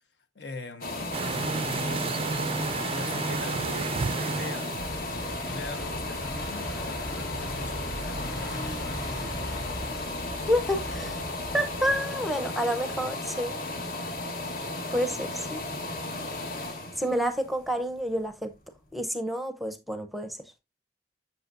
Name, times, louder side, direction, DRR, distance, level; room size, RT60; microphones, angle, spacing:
voice 1, 0.3-2.5 2.9-4.7 5.3-9.7, left 2 dB, 75° left, 1.1 m, -42 dB
sound 1, 0.8-18.5 19.0-19.1, left 2 dB, 55° left, 1.2 m, -35 dB
sound 2, 1.1-4.9, right 4 dB, 30° right, 0.3 m, -31 dB
sound 3, 4.8-12.0, equal, 20° left, 2.5 m, -39 dB
voice 2, 10.5-11.2 11.5-13.5 14.9-15.6 17.0-18.5 18.9-20.4, equal, ahead, 0.7 m, -29 dB
7.8 x 6.6 x 2.5 m
head